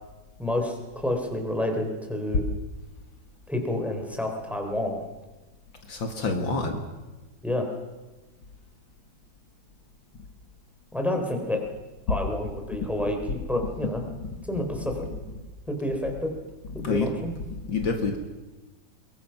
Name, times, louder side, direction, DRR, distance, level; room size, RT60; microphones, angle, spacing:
voice 1, 0.4-2.5 3.5-5.0 7.4-7.7 10.9-11.6 12.1-14.0 14.4-15.1 15.7-16.3 16.7-17.3, left 1 dB, ahead, 3 dB, 3.7 m, -29 dB
voice 2, 5.9-6.8 12.1-12.2 14.2-14.3 16.7-17.1 17.5-18.2, left 4 dB, 70° left, 4 dB, 2.6 m, -27 dB
23.5 x 22.0 x 5.9 m, 1.1 s
omnidirectional pair, 2.2 m